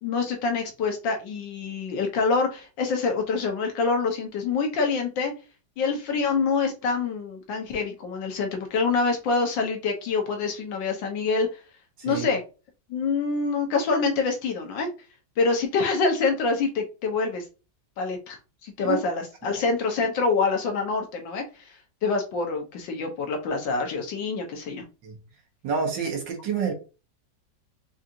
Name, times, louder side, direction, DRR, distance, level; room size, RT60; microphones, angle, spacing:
voice 1, 0.0-5.3 5.8-11.5 12.0-12.4 12.9-14.9 15.4-17.4 18.0-21.8 22.0-24.8, left 4 dB, 85° left, 4 dB, 1.6 m, -26 dB
voice 2, 25.6-26.7, right 6 dB, 75° right, 1 dB, 1.9 m, -28 dB
4.8 x 2.5 x 2.7 m, 0.32 s
omnidirectional pair, 1.9 m